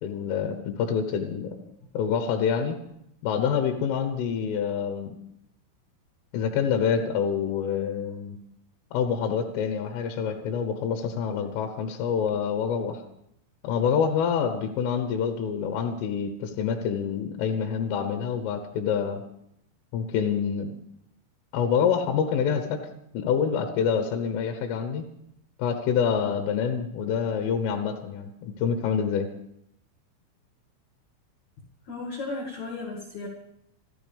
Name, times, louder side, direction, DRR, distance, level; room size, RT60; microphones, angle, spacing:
voice 1, 0.0-1.6 1.9-2.8 3.2-5.2 6.3-8.4 8.9-13.0 13.6-19.2 19.9-20.7 21.5-22.8 23.1-25.0 25.6-29.3, left 7 dB, 80° left, 6 dB, 3.7 m, -26 dB
voice 2, 31.6-33.3, left 3 dB, 55° left, 0 dB, 2.1 m, -35 dB
27.0 x 13.0 x 3.5 m, 0.76 s
omnidirectional pair, 5.9 m